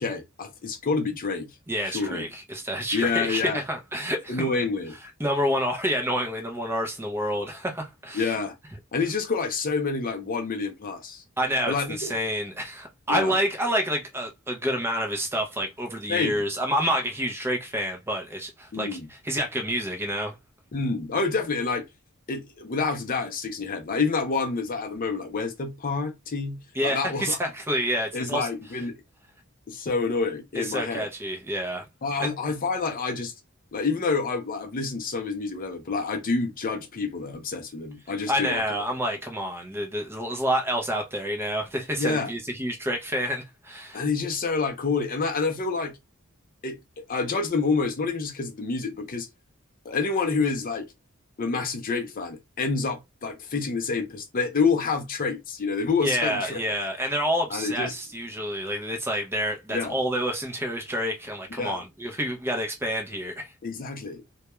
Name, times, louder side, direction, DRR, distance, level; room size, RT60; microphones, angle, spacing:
voice 1, 0.0-1.5 1.8-2.3 2.9-3.6 4.3-4.9 8.1-8.5 8.9-11.2 11.7-12.1 13.1-13.3 16.1-16.4 18.7-19.1 20.7-21.8 22.3-27.4 28.1-28.9 29.7-31.1 32.0-33.3 33.7-38.6 42.0-42.3 43.9-45.9 46.6-46.8 47.1-49.3 49.8-50.8 51.4-56.6 57.5-57.9 59.7-60.0 61.6-61.8 63.6-64.4, left 4 dB, 45° left, 0.5 m, -28 dB
voice 2, 1.7-4.6 5.2-8.3 11.4-20.3 26.7-28.5 30.6-31.9 32.2-32.3 38.3-44.0 56.0-63.5, equal, 10° right, 0.5 m, -28 dB
2.2 x 2.2 x 2.9 m
head